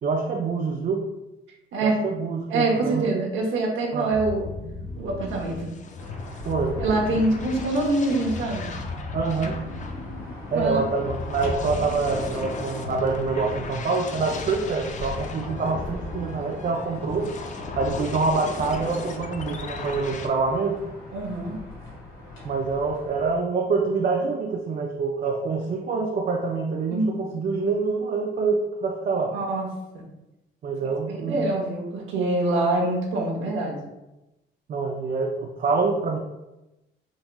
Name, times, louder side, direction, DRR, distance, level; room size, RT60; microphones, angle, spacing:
voice 1, 0.0-1.1 1.8-3.1 3.9-4.1 6.5-6.7 7.1-7.2 9.1-9.6 10.5-17.3 17.8-20.8 22.4-29.3 30.6-31.5 34.7-36.2, right 4 dB, 45° right, 1 dB, 0.4 m, -26 dB
voice 2, 2.5-4.5 4.9-5.7 6.8-8.7 10.5-10.8 21.1-21.6 26.9-27.3 29.1-29.7 29.9-30.0 31.1-33.9, right 2 dB, 75° right, -2 dB, 1.0 m, -25 dB
sound 1, 4.1-13.3, left 3 dB, 65° left, 0.7 m, -37 dB
sound 2, 5.0-20.3, left 4 dB, 40° left, 0.4 m, -37 dB
sound 3, 6.0-23.4, left 1 dB, 80° left, 1.2 m, -41 dB
3.8 x 2.9 x 2.2 m, 0.97 s
cardioid pair, 90°, 20 cm